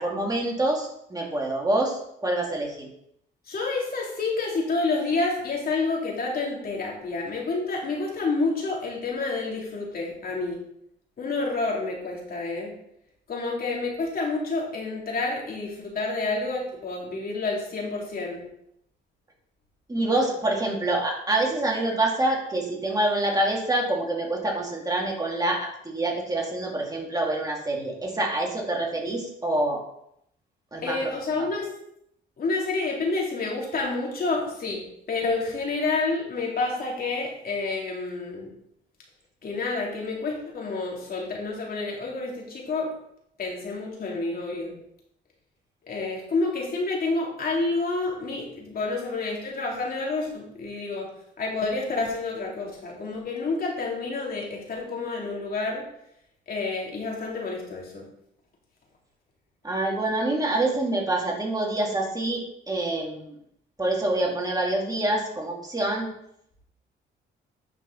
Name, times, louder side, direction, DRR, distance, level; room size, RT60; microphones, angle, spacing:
voice 1, 0.0-2.9 19.9-29.8 30.7-31.1 59.6-63.4 63.8-66.1, right 2 dB, 20° right, -1 dB, 2.6 m, -26 dB
voice 2, 3.5-10.6 11.2-12.7 13.3-18.4 30.8-31.7 32.4-38.5 39.4-42.9 43.4-44.7 45.8-51.1 51.4-55.8 56.5-58.1, left 3 dB, 50° left, -2 dB, 3.1 m, -29 dB
9.5 x 5.3 x 4.1 m, 0.74 s
cardioid pair, 90°, 20 cm